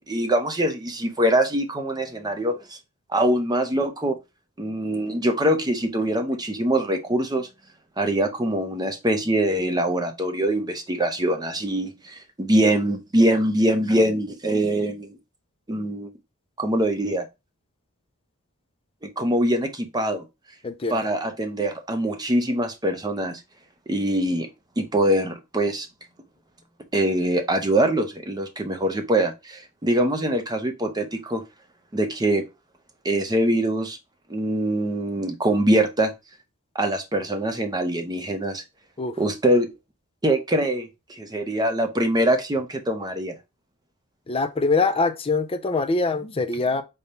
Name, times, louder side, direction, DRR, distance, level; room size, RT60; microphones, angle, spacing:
voice 1, 0.0-2.8 3.1-4.2 4.6-7.5 8.0-15.1 15.7-16.1 16.6-17.3 19.0-20.2 20.9-23.4 23.9-24.5 24.8-25.9 26.9-31.4 31.9-32.5 33.0-34.0 34.3-36.1 36.7-38.6 39.2-39.7 40.2-43.3, right 1 dB, 20° right, 0.6 m, -23 dB
voice 2, 20.6-21.0 39.0-39.2 44.3-46.8, left 3 dB, 25° left, 0.5 m, -23 dB
5.2 x 2.3 x 4.1 m
head